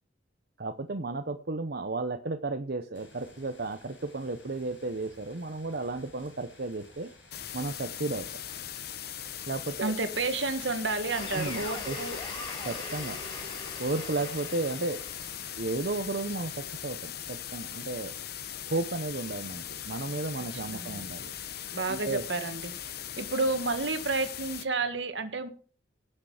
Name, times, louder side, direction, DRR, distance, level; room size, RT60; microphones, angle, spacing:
voice 1, 0.6-7.1 7.5-8.3 9.5-9.9 11.3-12.0 12.6-13.2 13.8-15.0 15.6-18.1 18.7-21.3 21.9-22.2, right 2 dB, 55° right, 6 dB, 0.8 m, -33 dB
sound 1, 2.9-16.8, left 3 dB, 75° left, 7.3 m, -56 dB
sound 2, 7.3-24.7, left 10 dB, 55° left, 0.9 m, -40 dB
voice 2, 9.8-12.2 20.7-21.0 21.7-22.7 23.2-25.5, right 3 dB, 70° right, 8 dB, 1.7 m, -30 dB
sound 3, 11.1-16.1, left 2 dB, 25° left, 5.4 m, -41 dB
17.0 x 6.6 x 5.0 m, 0.41 s
head